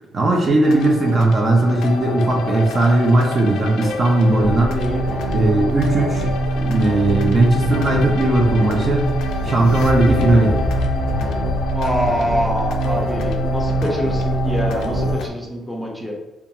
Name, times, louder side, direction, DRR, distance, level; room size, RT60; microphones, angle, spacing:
voice 1, 0.1-4.8 5.3-9.1 9.4-10.6, right 2 dB, 45° right, 0 dB, 0.5 m, -17 dB
sound 1, 0.6-15.3, left 3 dB, 80° left, 0.3 m, -28 dB
sound 2, 4.4-15.2, right 1 dB, 60° right, 1.0 m, -23 dB
voice 2, 4.7-5.0 11.7-16.1, equal, ahead, -2 dB, 0.6 m, -25 dB
2.5 x 2.3 x 2.9 m, 1.0 s
cardioid pair, 90°, 0 cm